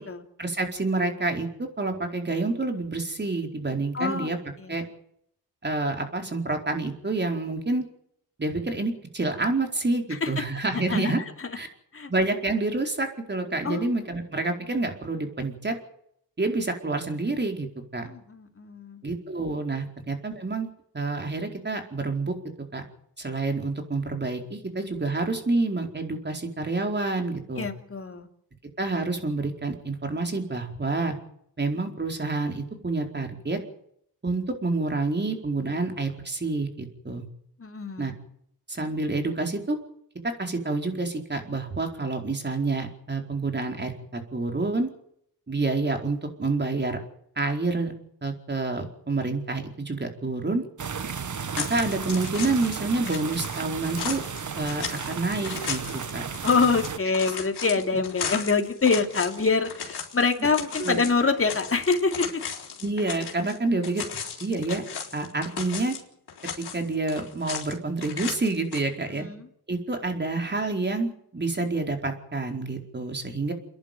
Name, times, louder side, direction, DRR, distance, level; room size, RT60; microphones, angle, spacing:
voice 1, 0.4-4.4 4.7-4.8 5.6-7.8 8.4-11.2 11.5-11.7 12.1-15.8 16.4-17.7 17.9-18.0 19.0-20.7 20.9-22.3 22.7-22.8 23.2-27.7 28.8-31.2 31.6-33.6 34.2-37.2 38.0-38.1 38.7-39.8 40.2-44.9 45.5-47.0 47.4-47.9 48.2-50.6 51.6-54.2 54.5-56.3 57.3-57.4 57.9-58.0 60.4-60.5 60.8-61.0 62.8-64.1 64.4-64.8 65.1-65.9 66.6-69.3 69.7-73.5, right 3 dB, 25° right, 4 dB, 4.6 m, -28 dB
voice 2, 3.9-4.3 4.6-4.9 10.2-10.4 10.9-11.1 11.9-12.1 13.6-13.9 18.0-19.0 27.6-28.3 37.6-38.1 56.4-62.4 69.1-69.5, left 4 dB, 35° left, 5 dB, 3.0 m, -25 dB
sound 1, 50.8-57.0, right 6 dB, 45° right, 1.6 m, -34 dB
sound 2, 51.5-52.8 53.1-63.6 63.8-66.0 66.3-67.7 68.0-68.8, left 7 dB, 70° left, 4.3 m, -36 dB
29.0 x 11.0 x 9.3 m, 0.71 s
cardioid pair, 85°, 40 cm